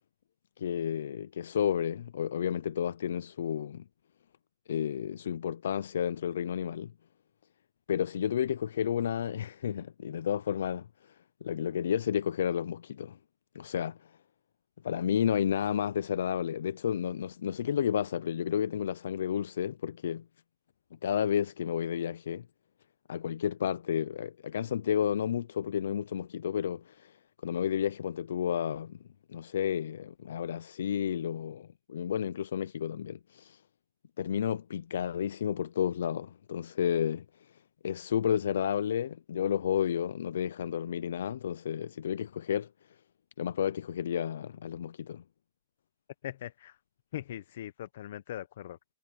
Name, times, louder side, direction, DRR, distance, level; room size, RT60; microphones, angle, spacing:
voice 1, 0.6-3.8 4.7-6.9 7.9-11.2 11.4-13.2 13.5-14.1 14.8-20.2 21.0-22.5 23.1-27.2 27.4-29.0 29.3-33.6 34.2-37.3 37.8-42.7 43.4-45.2, left 9 dB, 85° left, 0.4 m, -31 dB
voice 2, 46.2-46.8 47.1-48.8, left 12 dB, 65° left, 0.8 m, -40 dB
supercardioid pair, 160°, 0 cm